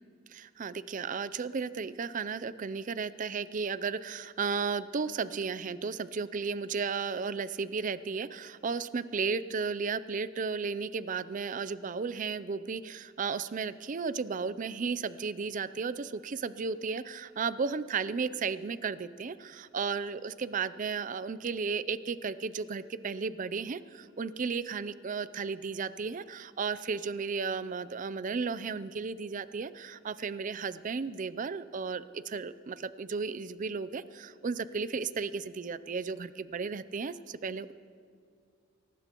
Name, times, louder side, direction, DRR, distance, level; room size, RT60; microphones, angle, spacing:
voice 1, 0.3-37.7, right 5 dB, 40° right, 15 dB, 0.4 m, -34 dB
23.0 x 19.0 x 3.0 m, 2.3 s
head